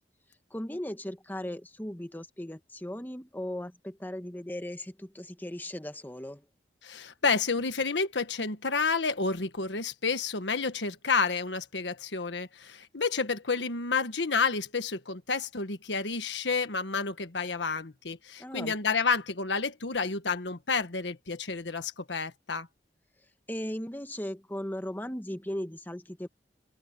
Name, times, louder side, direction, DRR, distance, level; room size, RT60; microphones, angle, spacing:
voice 1, 0.5-6.4 7.0-7.1 18.4-18.7 23.5-26.3, left 1 dB, 10° left, 1.4 m, -37 dB
voice 2, 6.8-22.7, left 4 dB, 90° left, 1.5 m, -30 dB
open air
head